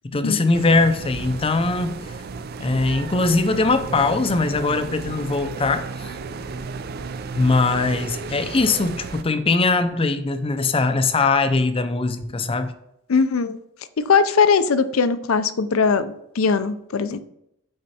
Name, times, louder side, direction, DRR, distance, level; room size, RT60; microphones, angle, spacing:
voice 1, 0.0-2.0 2.6-6.1 7.3-12.7, left 3 dB, 25° left, 10 dB, 0.5 m, -21 dB
sound 1, 0.5-9.2, right 4 dB, 45° right, 0.4 m, -33 dB
voice 2, 13.1-13.6 14.0-17.2, left 5 dB, 75° left, 13 dB, 0.5 m, -20 dB
8.5 x 4.4 x 4.2 m, 0.79 s
head